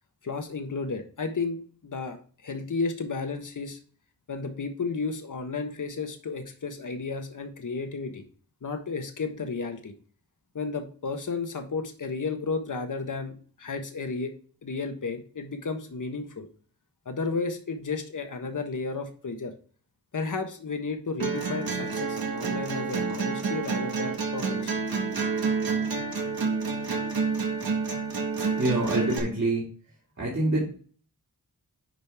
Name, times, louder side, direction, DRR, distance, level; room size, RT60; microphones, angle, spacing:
voice 1, 0.2-2.2 2.4-3.8 4.3-8.2 8.6-9.9 10.5-14.3 14.6-16.5 17.0-19.5 20.1-24.7, left 4 dB, 60° left, 6 dB, 1.3 m, -33 dB
sound 1, 21.2-29.2, right 5 dB, 85° right, 1.7 m, -29 dB
voice 2, 28.4-29.7 30.2-30.7, right 2 dB, 50° right, -5 dB, 2.7 m, -26 dB
10.5 x 5.2 x 3.6 m, 0.43 s
wide cardioid pair, 80°, 35 cm